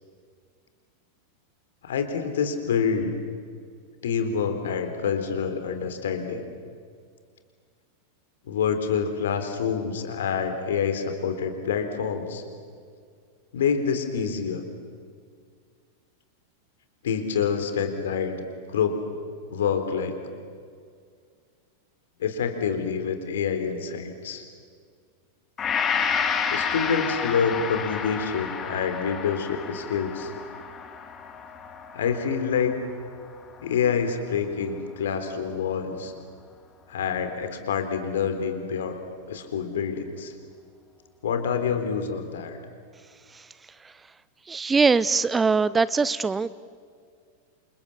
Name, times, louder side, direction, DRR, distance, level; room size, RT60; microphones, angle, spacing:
voice 1, 1.8-3.2 4.0-6.4 8.5-12.4 13.5-14.6 17.0-18.3 18.7-19.0 19.5-20.1 22.2-24.4 26.5-30.3 31.9-32.7 33.6-36.1 36.9-39.0 39.3-40.3 41.2-42.6, left 6 dB, 60° left, 7 dB, 3.7 m, -27 dB
Gong, 25.6-33.9 34.3-34.4, left 6 dB, 25° left, 2.8 m, -30 dB
voice 2, 44.5-46.5, right 4 dB, 15° right, 18 dB, 0.6 m, -22 dB
28.5 x 28.0 x 7.3 m, 2.1 s
figure-of-eight pair, 90°, 0 cm